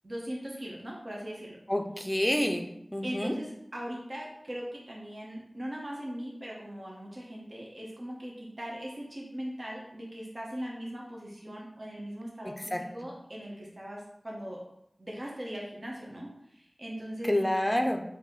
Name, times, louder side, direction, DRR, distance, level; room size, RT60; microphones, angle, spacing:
voice 1, 0.0-1.6 3.0-14.6 15.0-17.4, equal, 50° right, -3 dB, 0.8 m, -40 dB
voice 2, 1.7-2.6 2.9-3.3 12.7-12.8 17.3-18.0, left 1 dB, 15° left, 5 dB, 0.5 m, -27 dB
4.0 x 2.7 x 4.1 m, 0.76 s
wide cardioid pair, 55°, 0 cm